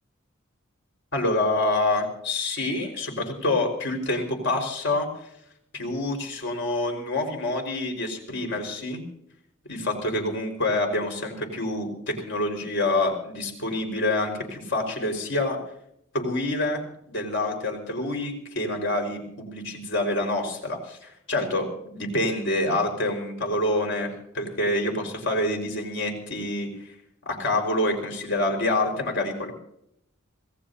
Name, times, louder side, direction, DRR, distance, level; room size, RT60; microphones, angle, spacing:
voice 1, 1.1-5.1 5.7-9.0 9.7-15.6 16.1-16.8 17.1-21.7 21.9-26.7 27.2-29.5, left 2 dB, 60° left, 3 dB, 5.0 m, -27 dB
26.5 x 18.0 x 2.8 m, 0.73 s
head